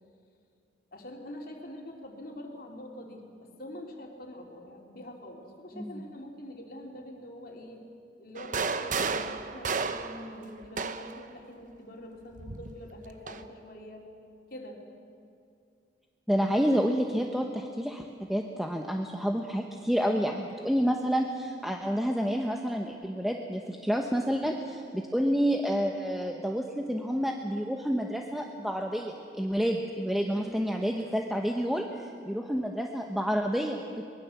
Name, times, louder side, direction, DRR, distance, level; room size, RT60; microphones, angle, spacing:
voice 1, 0.9-7.8 8.2-14.0 14.5-14.8 30.3-30.6, left 1 dB, 55° left, 1 dB, 3.4 m, -45 dB
sound 1, 8.4-11.3 12.4-13.4, right 4 dB, 45° right, 0.9 m, -33 dB
voice 2, 16.3-34.0, equal, ahead, 2 dB, 1.0 m, -29 dB
24.0 x 21.0 x 7.3 m, 2.4 s
head